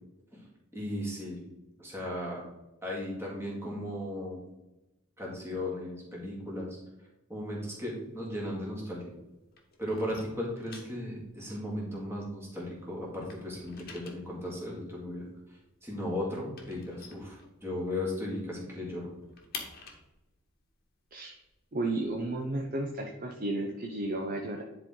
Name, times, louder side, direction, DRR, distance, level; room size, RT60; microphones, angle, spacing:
voice 1, 0.7-1.4 1.8-2.4 2.8-4.4 5.2-6.8 7.3-9.1 9.8-19.1, left 1 dB, 10° right, -4 dB, 2.1 m, -36 dB
sound 1, 7.8-9.2 9.5-12.7 13.0-18.0 18.4-18.5 18.8-22.5, left 5 dB, 45° left, 1.2 m, -49 dB
voice 2, 21.7-24.6, right 2 dB, 40° right, 2 dB, 0.7 m, -33 dB
10.0 x 4.3 x 3.8 m, 0.97 s
head